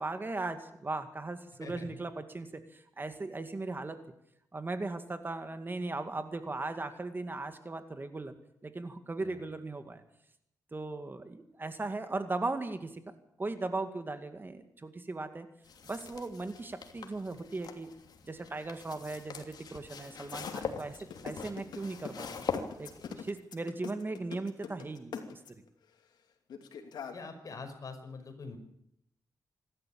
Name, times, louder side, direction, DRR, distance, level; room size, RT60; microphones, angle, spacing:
voice 1, 0.0-4.1 4.5-8.4 8.6-10.0 10.7-13.0 13.4-15.5 15.8-17.9 18.3-22.5 22.8-22.9 23.2-25.6, right 3 dB, 30° right, 8 dB, 2.1 m, -38 dB
voice 2, 1.6-2.0 9.2-9.4 27.1-28.6, left 4 dB, 55° left, 5 dB, 5.7 m, -44 dB
sound 1, 15.6-23.3, left 6 dB, 70° left, 2.8 m, -43 dB
sound 2, 20.2-25.7 26.5-27.1, left 7 dB, 90° left, 2.8 m, -42 dB
26.5 x 12.5 x 8.8 m, 0.76 s
cardioid pair, 85°, 7 cm